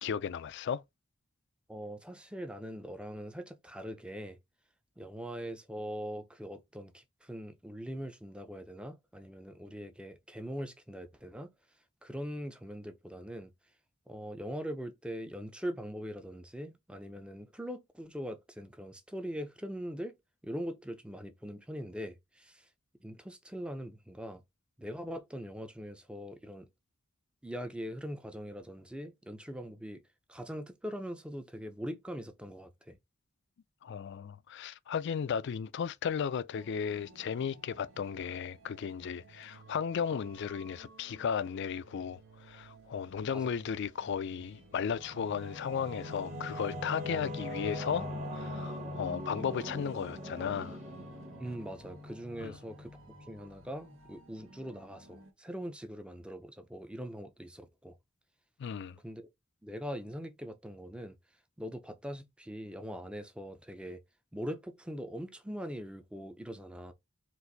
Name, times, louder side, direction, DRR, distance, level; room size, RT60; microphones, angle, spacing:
voice 1, 0.0-0.8 33.8-42.2 42.5-50.8 52.4-52.5 58.6-59.0, left 7 dB, 60° left, 0.4 m, -35 dB
voice 2, 1.7-4.4 5.0-11.5 12.0-13.5 14.1-20.1 20.4-22.7 23.0-24.4 24.8-26.7 27.4-30.0 30.3-33.0 43.3-43.6 51.4-53.0 53.3-58.0 59.0-59.3 59.6-61.2 61.6-64.0 64.3-66.9, equal, 5° right, 0.5 m, -42 dB
sound 1, 36.5-55.3, right 3 dB, 75° right, 1.0 m, -57 dB
Singing / Musical instrument, 44.6-53.8, left 1 dB, 35° right, 1.2 m, -41 dB
4.4 x 2.6 x 3.9 m
head